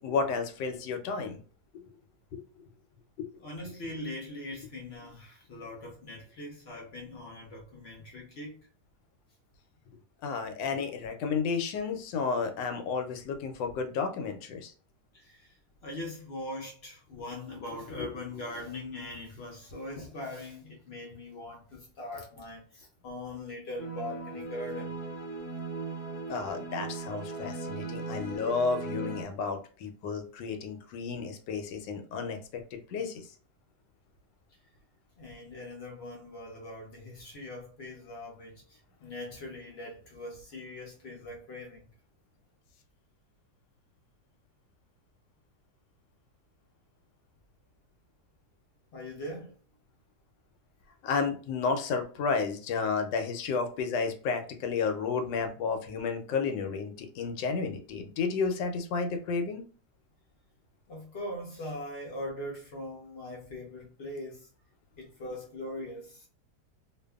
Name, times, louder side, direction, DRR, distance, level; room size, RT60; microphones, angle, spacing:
voice 1, 0.0-1.4 2.3-2.4 3.2-3.7 10.2-14.7 18.0-18.1 26.3-33.3 51.0-59.6, left 5 dB, 90° left, 1.2 m, -32 dB
voice 2, 3.4-8.7 15.1-15.6 15.8-25.0 35.2-41.9 48.9-49.6 60.9-64.5 65.0-66.3, left 1 dB, 60° left, 0.6 m, -41 dB
string effect, 23.8-29.2, right 3 dB, 55° right, 0.5 m, -38 dB
2.5 x 2.5 x 2.3 m
omnidirectional pair, 1.9 m